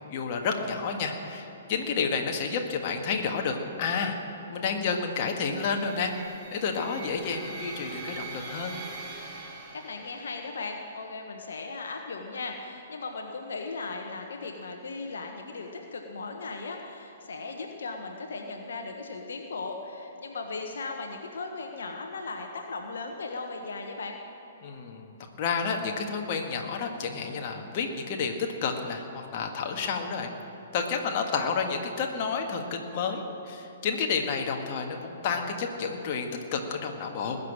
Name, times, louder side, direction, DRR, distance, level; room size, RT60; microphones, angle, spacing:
voice 1, 0.1-4.2 4.5-6.1 6.5-8.7 24.6-28.3 28.6-30.3 30.7-37.4, left 5 dB, 40° left, 2 dB, 1.6 m, -30 dB
sound 1, 5.5-10.6, right 3 dB, 25° right, 3.0 m, -42 dB
voice 2, 9.4-24.2, left 3 dB, 60° left, 3 dB, 1.3 m, -37 dB
20.0 x 6.8 x 8.9 m, 3.0 s
figure-of-eight pair, 120°, 0 cm